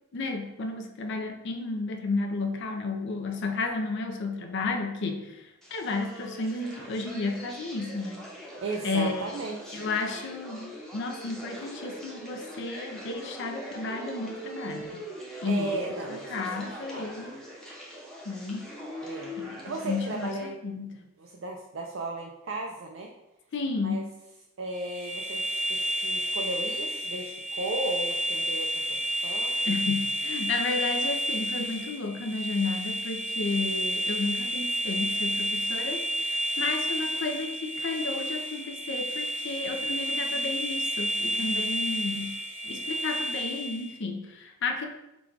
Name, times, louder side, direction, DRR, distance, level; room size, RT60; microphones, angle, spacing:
voice 1, 0.1-8.3 8.8-9.4 9.7-15.0 15.4-15.8 16.3-17.4 18.2-18.7 19.4-21.1 23.5-24.1 29.6-42.4 42.6-44.9, left 3 dB, 60° left, 4 dB, 0.5 m, -32 dB
sound 1, 5.6-20.4, equal, ahead, 0.8 m, -42 dB
voice 2, 8.6-9.8 15.5-17.1 19.0-19.3 19.6-20.6 21.2-23.1 23.8-24.0 24.6-29.6, right 2 dB, 65° right, 1 dB, 0.4 m, -35 dB
sound 2, 24.7-43.9, equal, 35° right, 0.8 m, -31 dB
4.0 x 2.3 x 4.5 m, 0.93 s
head